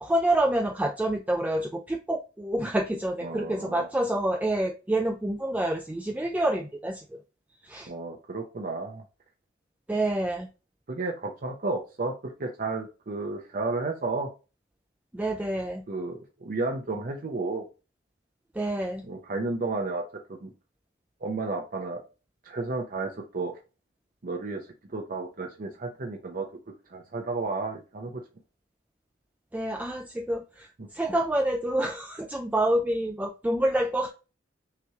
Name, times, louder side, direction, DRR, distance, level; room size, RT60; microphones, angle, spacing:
voice 1, 0.0-7.0 7.6-7.9 9.9-10.5 15.1-15.8 18.6-19.0 29.5-34.1, right 1 dB, 10° right, 4 dB, 0.3 m, -27 dB
voice 2, 3.2-3.9 7.9-9.0 10.9-14.3 15.9-17.6 19.0-20.0 20.4-20.5 21.2-22.0 22.4-23.6 24.2-26.5 26.9-28.2, right 3 dB, 45° right, 2 dB, 0.7 m, -32 dB
5.8 x 3.0 x 2.3 m, 0.31 s
head